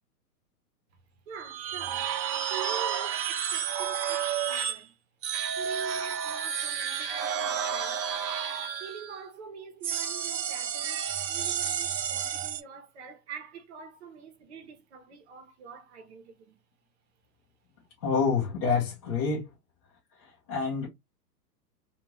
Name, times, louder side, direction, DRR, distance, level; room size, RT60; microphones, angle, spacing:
voice 1, 1.3-5.0 5.6-8.2 8.5-16.6, right 6 dB, 45° right, 0.8 m, -45 dB
sound 1, 1.4-4.8 5.2-9.2 9.8-12.6, right 8 dB, 85° right, 0.8 m, -31 dB
voice 2, 18.0-19.5 20.2-20.9, left 5 dB, 20° left, 0.5 m, -28 dB
2.5 x 2.4 x 2.9 m
hypercardioid pair, 155°, 49 cm